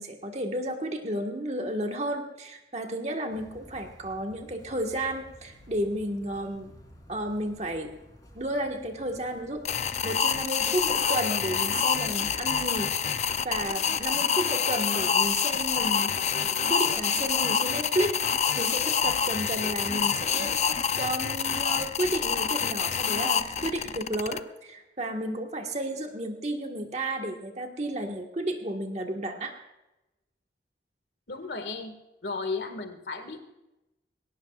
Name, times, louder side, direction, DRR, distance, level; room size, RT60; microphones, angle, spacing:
voice 1, 0.0-6.7 7.1-7.9 8.3-12.9 13.4-29.6, right 1 dB, 35° right, 3 dB, 1.5 m, -32 dB
sound 1, 3.3-13.7, equal, 20° left, 3.3 m, -53 dB
sound 2, 9.6-24.4, left 7 dB, 40° left, 0.5 m, -27 dB
voice 2, 31.3-31.9 32.2-33.4, left 3 dB, 75° left, 7 dB, 1.8 m, -34 dB
21.0 x 17.5 x 2.4 m, 0.97 s
head